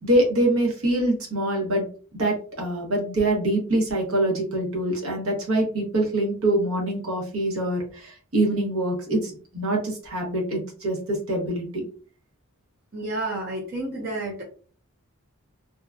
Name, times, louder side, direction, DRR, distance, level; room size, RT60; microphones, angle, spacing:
voice 1, 0.0-1.8 2.1-11.8, right 1 dB, 75° right, 0 dB, 1.0 m, -24 dB
voice 2, 12.9-14.4, right 2 dB, 40° right, -3 dB, 0.6 m, -30 dB
2.8 x 2.2 x 2.4 m, 0.40 s
head